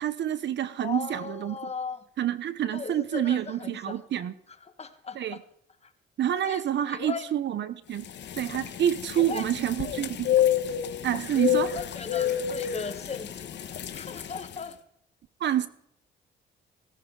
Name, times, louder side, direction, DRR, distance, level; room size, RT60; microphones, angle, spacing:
voice 1, 0.0-1.6 2.2-4.3 5.1-5.4 6.2-8.1 8.4-10.4 11.0-11.8 15.4-15.7, right 10 dB, 65° right, 14 dB, 1.0 m, -28 dB
voice 2, 0.8-2.0 2.7-4.0 4.8-5.4 5.8-5.9 6.4-6.6 6.9-7.2 9.2-9.4 11.7-14.7, left 5 dB, 30° left, 9 dB, 1.6 m, -37 dB
sound 1, 8.0-14.6, left 10 dB, 60° left, 1.3 m, -29 dB
17.0 x 15.5 x 3.9 m, 0.70 s
cardioid pair, 90°, 20 cm